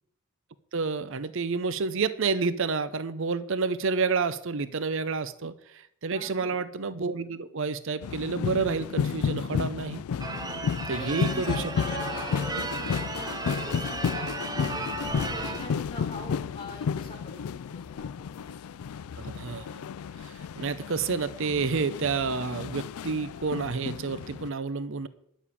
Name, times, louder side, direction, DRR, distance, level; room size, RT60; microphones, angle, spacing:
voice 1, 0.7-10.0 10.9-11.7 19.2-19.8 20.2-25.1, right 4 dB, 60° right, 14 dB, 0.6 m, -29 dB
voice 2, 6.1-6.6 10.9-14.9 15.3-17.4 17.7-18.6, left 1 dB, 25° left, 0 dB, 3.8 m, -42 dB
sound 1, 8.0-24.5, left 6 dB, 85° left, 0.4 m, -32 dB
Church bell / Car / Alarm, 10.2-15.8, right 3 dB, 20° right, 1.0 m, -35 dB
10.5 x 7.2 x 8.3 m, 0.72 s
head